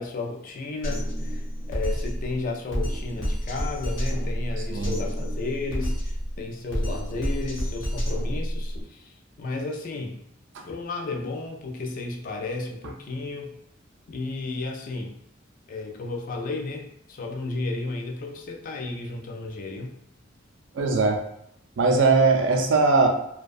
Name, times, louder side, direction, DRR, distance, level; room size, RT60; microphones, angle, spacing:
voice 1, 0.0-9.1 9.4-10.2 10.7-13.5 14.1-15.2 15.7-19.9, left 3 dB, 45° left, 2 dB, 0.3 m, -33 dB
Drum kit, 0.8-8.8, equal, 75° left, 0.8 m, -29 dB
voice 2, 20.7-21.2 21.8-23.1, right 3 dB, 65° right, 3 dB, 0.4 m, -20 dB
2.3 x 2.2 x 2.4 m, 0.73 s
head